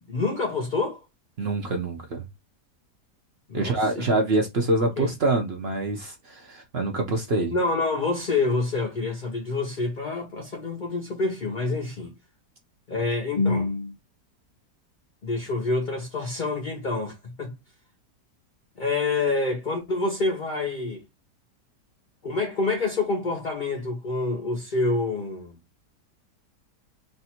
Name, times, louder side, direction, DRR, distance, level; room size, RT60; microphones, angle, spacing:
voice 1, 0.1-1.0 3.5-4.1 4.8-5.1 7.5-12.1 12.9-13.9 15.2-17.5 18.8-21.0 22.2-25.6, left 3 dB, 45° left, 0.6 m, -27 dB
voice 2, 1.4-2.2 3.5-7.5, right 2 dB, 50° right, 0.7 m, -25 dB
3.4 x 2.6 x 4.2 m
omnidirectional pair, 1.8 m